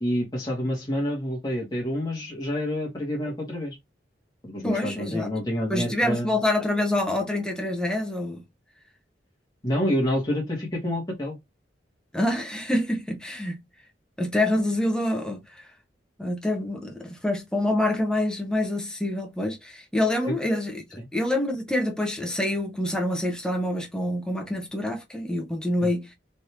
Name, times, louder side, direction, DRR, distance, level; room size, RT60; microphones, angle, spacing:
voice 1, 0.0-3.8 4.4-6.3 9.6-11.4 20.3-20.4 21.0-21.1, equal, 20° left, 1.2 m, -28 dB
voice 2, 4.6-5.3 5.7-8.4 12.1-13.6 14.2-15.6 16.2-26.1, left 1 dB, 5° left, 0.8 m, -26 dB
3.3 x 2.6 x 2.8 m
head